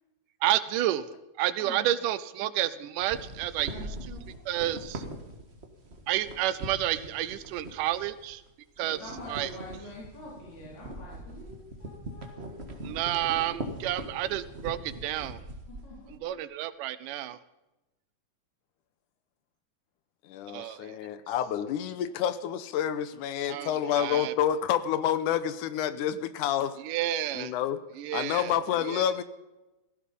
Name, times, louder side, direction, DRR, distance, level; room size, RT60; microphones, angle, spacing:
voice 1, 0.4-1.1 1.4-4.2 4.5-5.0 6.1-8.4 8.8-9.0 9.3-9.5 12.8-15.4 16.1-17.4 20.5-21.0 23.5-24.3 26.8-27.5 28.0-29.0, right 13 dB, 85° right, 14 dB, 2.4 m, -30 dB
sound 1, 3.0-8.5 8.8-16.2, right 1 dB, 30° right, 1.3 m, -42 dB
voice 2, 3.7-4.4 8.8-12.6 15.7-16.1, left 1 dB, 60° left, -5 dB, 5.8 m, -45 dB
voice 3, 20.3-26.7 27.3-27.8 28.1-29.2, left 9 dB, 80° left, 14 dB, 2.4 m, -28 dB
17.5 x 15.5 x 5.4 m, 1.0 s
omnidirectional pair, 3.6 m